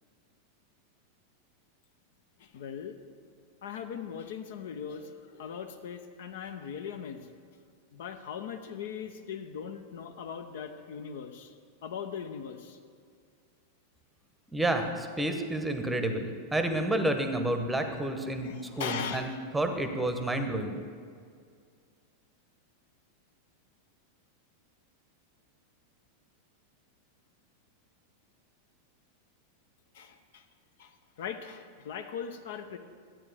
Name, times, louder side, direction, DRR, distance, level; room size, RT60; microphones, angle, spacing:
voice 1, 2.4-3.0 3.6-7.3 7.9-11.5 11.8-12.8 18.4-19.3 29.9-30.4 30.8-32.8, left 7 dB, 55° left, 8 dB, 0.5 m, -40 dB
voice 2, 14.5-20.8, right 1 dB, 5° right, 6 dB, 0.8 m, -30 dB
12.5 x 8.7 x 3.4 m, 2.1 s
figure-of-eight pair, 90°, 0 cm